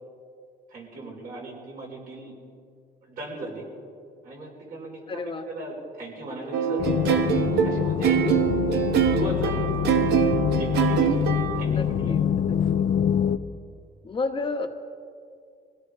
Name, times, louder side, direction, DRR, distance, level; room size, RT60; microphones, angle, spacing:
voice 1, 0.7-2.4 3.0-3.7 4.2-7.1 7.6-8.2 8.9-10.1 10.5-11.3 11.5-12.4, right 2 dB, 60° right, -3 dB, 5.6 m, -37 dB
voice 2, 5.1-5.4 11.5-12.4 14.0-14.7, left 3 dB, 30° left, 6 dB, 1.3 m, -31 dB
sound 1, 6.5-11.6, right 7 dB, 75° right, 1.3 m, -24 dB
sound 2, 6.8-13.4, left 8 dB, 50° left, 0.7 m, -25 dB
23.0 x 16.5 x 3.8 m, 2.3 s
cardioid pair, 110°, 17 cm